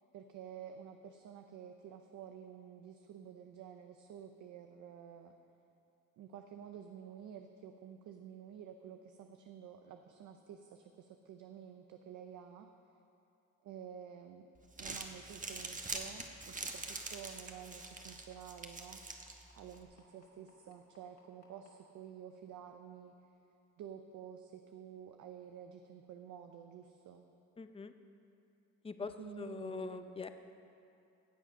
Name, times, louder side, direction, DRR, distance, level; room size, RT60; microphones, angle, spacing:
voice 1, 0.1-5.3 6.2-12.7 13.6-14.5 14.8-19.0 19.5-23.1 23.8-27.2 29.0-30.3, right 8 dB, 75° right, 5 dB, 0.7 m, -51 dB
Crumpling crinkling, 14.6-19.8, right 3 dB, 25° right, 1.2 m, -45 dB
sound 1, 16.6-21.7 22.7-22.8 23.2-23.3 23.8-23.9, left 5 dB, 60° left, 2.5 m, -65 dB
voice 2, 27.6-27.9 28.8-29.1 29.4-30.3, left 4 dB, 20° left, 9 dB, 0.6 m, -42 dB
16.0 x 7.6 x 5.5 m, 2.7 s
cardioid pair, 90°, 30 cm